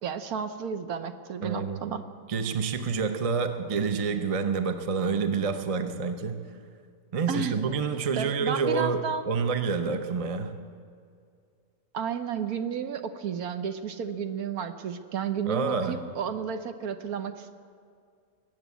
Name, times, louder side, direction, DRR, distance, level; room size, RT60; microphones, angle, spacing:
voice 1, 0.0-2.0 7.3-7.5 8.2-9.3 11.9-17.5, right 7 dB, 65° right, 9 dB, 1.2 m, -32 dB
voice 2, 1.4-1.8 2.3-6.5 7.1-10.6 15.4-16.0, right 5 dB, 40° right, 7 dB, 0.5 m, -28 dB
21.0 x 8.2 x 8.4 m, 2.2 s
omnidirectional pair, 1.9 m